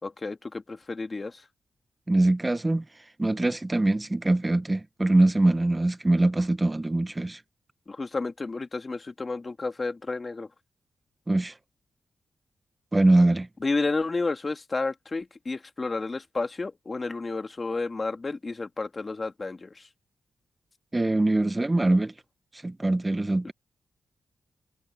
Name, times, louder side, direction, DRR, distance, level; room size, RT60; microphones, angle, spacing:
voice 1, 0.0-1.5 7.9-10.5 13.6-19.9, left 3 dB, 35° left, 2.1 m, -31 dB
voice 2, 2.1-2.8 3.2-7.4 11.3-11.5 12.9-13.5 20.9-22.1 22.6-23.5, right 2 dB, 20° right, 1.3 m, -23 dB
cardioid pair, 65°, 0 cm